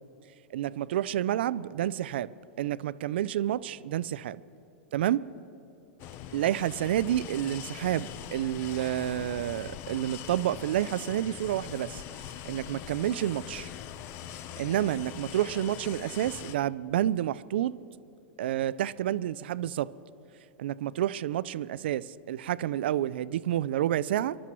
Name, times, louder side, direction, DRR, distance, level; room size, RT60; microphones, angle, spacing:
voice 1, 0.5-2.3 2.6-4.4 4.9-5.3 6.3-12.0 12.4-13.7 14.6-17.8 18.4-19.9 20.6-24.4, right 12 dB, 75° right, 0.3 m, -29 dB
sound 1, 6.0-16.6, left 10 dB, 45° left, 0.6 m, -42 dB
25.5 x 12.5 x 3.0 m
hypercardioid pair, 120°, 6 cm